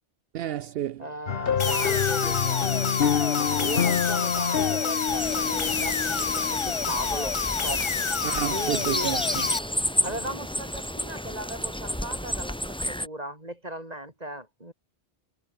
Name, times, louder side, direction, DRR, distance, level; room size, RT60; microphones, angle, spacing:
voice 1, 0.3-1.0 8.2-9.5, right 11 dB, 70° right, 0.8 m, -30 dB
voice 2, 1.0-2.9 3.5-7.8 8.5-9.1 10.0-12.6 12.9-14.7, right 1 dB, 40° right, 6.1 m, -37 dB
sound 1, 1.3-6.9, left 7 dB, 65° left, 1.2 m, -27 dB
sound 2, 1.6-9.6, left 5 dB, 30° left, 0.7 m, -28 dB
sound 3, 5.1-13.1, equal, 5° left, 2.4 m, -32 dB
omnidirectional pair, 1.0 m